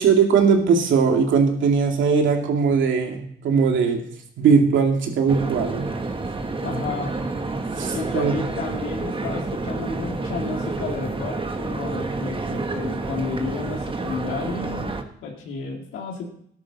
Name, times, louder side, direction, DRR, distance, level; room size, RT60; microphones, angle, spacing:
voice 1, 0.0-4.0 4.4-5.9 7.8-8.3, right 5 dB, 75° right, 3 dB, 2.4 m, -19 dB
sound 1, 5.3-15.0, right 3 dB, 25° right, 1.3 m, -29 dB
voice 2, 6.6-7.2 7.9-16.3, left 4 dB, 90° left, 0 dB, 2.4 m, -32 dB
13.5 x 11.0 x 4.1 m, 0.67 s
cardioid pair, 90°, 20 cm